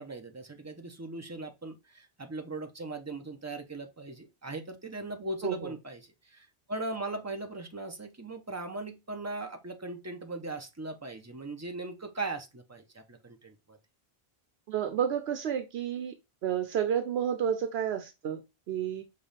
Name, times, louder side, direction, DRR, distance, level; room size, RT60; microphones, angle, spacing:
voice 1, 0.0-6.0 6.3-13.8, right 2 dB, 20° right, 0.6 m, -39 dB
voice 2, 5.4-5.7 14.7-16.2 16.4-19.0, right 9 dB, 80° right, 0.9 m, -31 dB
5.3 x 2.4 x 3.9 m
omnidirectional pair, 1.0 m